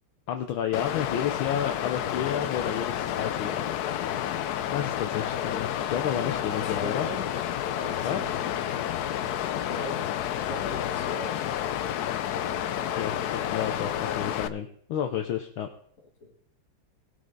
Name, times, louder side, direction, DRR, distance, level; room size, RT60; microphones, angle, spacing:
voice 1, 0.3-3.7 4.7-7.1 8.0-8.2 12.9-15.7, left 9 dB, 70° left, 5 dB, 1.6 m, -31 dB
Water, 0.7-14.5, left 10 dB, 90° left, 0.8 m, -30 dB
voice 2, 6.3-7.3 7.6-8.5 9.7-10.0 10.5-11.3 16.2-16.4, left 2 dB, 35° left, -1 dB, 2.6 m, -39 dB
19.0 x 6.4 x 4.0 m, 0.63 s
omnidirectional pair, 2.4 m